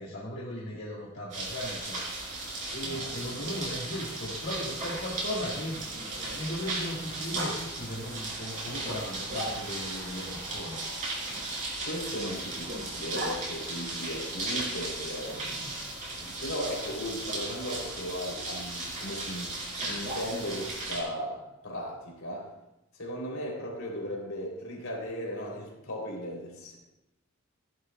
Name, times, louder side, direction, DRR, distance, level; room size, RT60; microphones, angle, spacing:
voice 1, 0.0-2.0 2.7-5.9 6.3-10.8, equal, 55° left, -6 dB, 1.8 m, -37 dB
sound 1, 1.3-21.0, right 2 dB, 40° right, 3.7 m, -36 dB
voice 2, 2.8-3.5 11.8-15.6 16.2-22.5 23.0-26.8, equal, 75° left, -2 dB, 3.4 m, -37 dB
Growling, 3.2-6.6 7.3-7.5 8.8-9.9 11.3-13.4 15.2-15.9 17.2-17.4 19.8-20.6, equal, 55° right, 2.5 m, -41 dB
15.5 x 11.0 x 2.4 m, 0.90 s
head